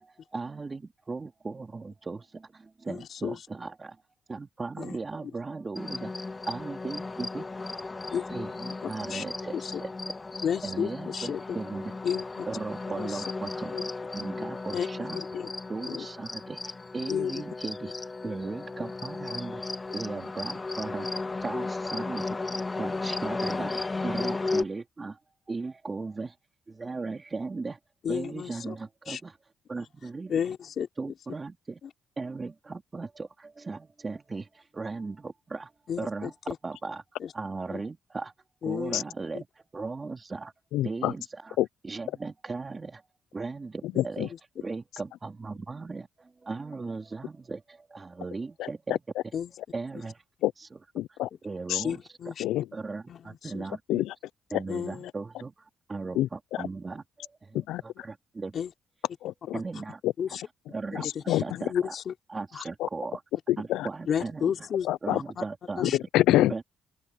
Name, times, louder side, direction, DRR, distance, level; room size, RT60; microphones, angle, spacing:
voice 1, 0.0-4.0 4.3-6.2 6.5-7.5 8.3-9.9 10.6-12.0 12.5-19.6 19.9-21.1 21.4-25.2 25.5-26.3 26.7-27.8 28.1-29.4 29.7-30.4 31.0-31.8 32.2-35.7 36.0-36.3 36.6-37.0 37.3-38.3 38.6-39.5 39.7-40.5 40.8-41.6 41.8-43.0 43.3-44.3 44.6-49.0 49.7-50.2 51.4-52.0 52.7-53.8 54.5-55.5 55.9-58.5 59.5-60.0 60.7-61.1 61.4-61.9 62.3-63.2 63.6-64.4 65.0-66.0 66.5-66.6, right 3 dB, 30° right, 3.5 m, -37 dB
voice 2, 2.9-3.4 4.8-5.0 8.1-8.3 8.8-9.2 9.5-9.7 10.4-11.6 12.0-12.5 13.0-13.2 13.7-13.8 14.7-14.9 15.3-15.5 15.8-16.1 17.1-17.4 28.0-28.8 29.1-29.2 30.3-30.9 35.9-36.6 37.2-37.3 37.7-37.8 38.6-39.0 44.0-44.4 49.3-49.5 49.9-50.0 51.8-52.6 53.1-53.7 54.7-55.1 58.5-58.7 60.2-60.4 61.0-62.1 62.5-62.6 64.1-64.9 65.1-65.4 65.8-66.0, left 8 dB, 60° left, 4.4 m, -32 dB
relaxing ambient, 5.8-24.6, left 3 dB, 25° left, 1.8 m, -35 dB
voice 3, 40.7-41.1 41.6-41.7 44.0-44.3 48.6-49.0 50.4-50.5 50.9-51.3 51.7-51.8 52.4-52.7 53.9-54.1 54.5-54.6 56.1-56.3 56.6-56.7 57.5-58.1 59.2-59.6 60.0-60.1 60.9-61.4 62.8-62.9 63.5-63.9 64.8-65.2 65.8-66.5, left 14 dB, 90° left, 0.4 m, -26 dB
open air
cardioid pair, 90°, 0 cm